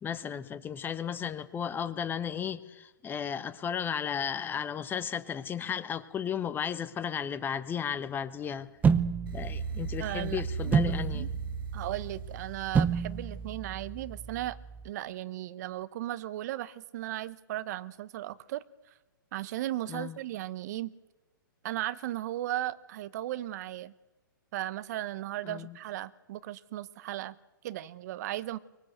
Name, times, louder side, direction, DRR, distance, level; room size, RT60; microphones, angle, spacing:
voice 1, 0.0-8.7 9.3-11.3 19.9-20.2 25.5-25.8, left 8 dB, 15° left, 13 dB, 1.1 m, -34 dB
sound 1, 8.8-14.9, right 6 dB, 15° right, 0.8 m, -31 dB
sound 2, 9.3-13.3, right 5 dB, 75° right, 0.8 m, -37 dB
voice 2, 10.0-11.3 11.7-14.6 14.8-18.6 19.3-20.9 21.6-23.9 24.5-27.3 27.6-28.6, right 14 dB, 50° right, 17 dB, 1.0 m, -36 dB
24.0 x 20.0 x 8.1 m, 1.1 s
hypercardioid pair, 120°, 11 cm